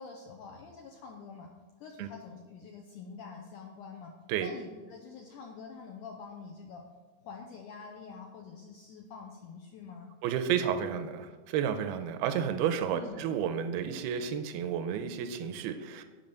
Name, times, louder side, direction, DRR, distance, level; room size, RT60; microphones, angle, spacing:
voice 1, 0.0-1.5 1.8-4.1 4.4-6.8 7.2-10.1 12.9-13.2, left 5 dB, 80° left, 1 dB, 1.8 m, -46 dB
voice 2, 10.2-16.0, right 8 dB, 80° right, 9 dB, 2.4 m, -31 dB
8.9 x 5.6 x 6.8 m, 1.4 s
omnidirectional pair, 4.5 m